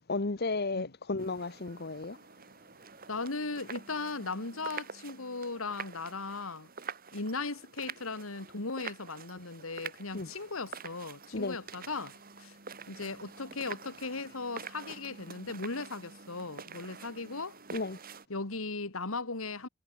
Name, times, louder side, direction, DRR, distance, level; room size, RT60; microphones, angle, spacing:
voice 1, 0.1-2.2 10.1-10.3 11.3-11.6 17.7-18.0, left 3 dB, 50° left, 1.1 m, -33 dB
sound 1, 1.2-18.3, right 6 dB, 45° right, 2.8 m, -47 dB
voice 2, 3.1-6.7 7.1-12.1 12.4-12.6 12.9-17.6 18.3-19.7, left 3 dB, 80° left, 2.2 m, -37 dB
head